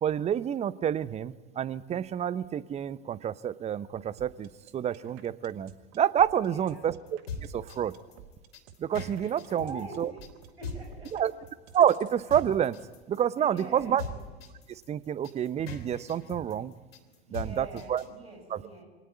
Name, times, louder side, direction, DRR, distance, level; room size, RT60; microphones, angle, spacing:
voice 1, 0.0-7.9 8.8-10.1 11.1-11.3 11.7-12.8 13.1-14.0 14.7-16.7 17.3-18.0 18.5-18.6, right 9 dB, 20° right, 18 dB, 0.8 m, -28 dB
sound 1, 4.2-12.2, right 9 dB, 50° right, 1.8 m, -53 dB
voice 2, 6.4-6.9 9.5-10.2 10.6-11.2 13.4-14.1 17.3-18.9, right 3 dB, 80° right, 3 dB, 7.3 m, -44 dB
sound 2, 7.1-18.1, left 2 dB, 70° left, 3.6 m, -41 dB
25.0 x 18.5 x 9.3 m, 1.3 s
figure-of-eight pair, 85°, 31 cm